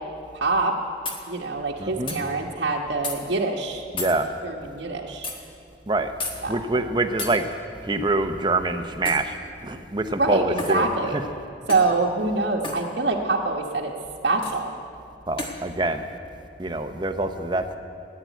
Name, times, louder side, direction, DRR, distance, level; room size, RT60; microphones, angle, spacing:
voice 1, 0.3-0.8 1.3-3.8 4.4-5.3 6.4-6.6 10.2-11.2 11.7-13.9 14.2-14.7, right 3 dB, 75° right, -1 dB, 1.1 m, -25 dB
sound 1, 1.0-1.2 2.1-2.2 3.0-3.2 4.0-4.2 5.2-5.4 6.2-6.4 7.2-7.4 9.0-9.3 10.6-10.8 11.7-11.9 12.6-12.8 14.4-14.6 15.4-15.6, left 3 dB, 25° left, 1.5 m, -32 dB
voice 2, 1.8-2.2 3.9-4.3 5.9-6.1 6.5-7.4 7.8-10.9 11.1-11.2 15.3-16.1 16.6-17.8, right 2 dB, 25° right, 7 dB, 0.8 m, -25 dB
15.0 x 9.6 x 9.2 m, 2.5 s
head